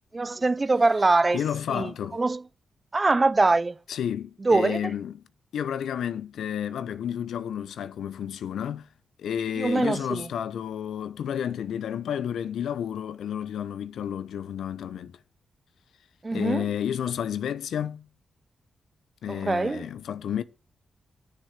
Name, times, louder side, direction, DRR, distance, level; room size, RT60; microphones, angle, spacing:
voice 1, 0.1-1.4 1.7-2.4 2.9-3.8 4.4-4.9 9.6-10.3 16.2-16.7 19.3-19.9, right 3 dB, 35° right, 0.5 m, -23 dB
voice 2, 1.3-2.2 3.9-5.2 5.5-8.9 9.2-15.2 16.3-18.1 19.2-20.4, left 9 dB, 80° left, 0.8 m, -31 dB
9.7 x 6.9 x 8.1 m
supercardioid pair, 50°, 0 cm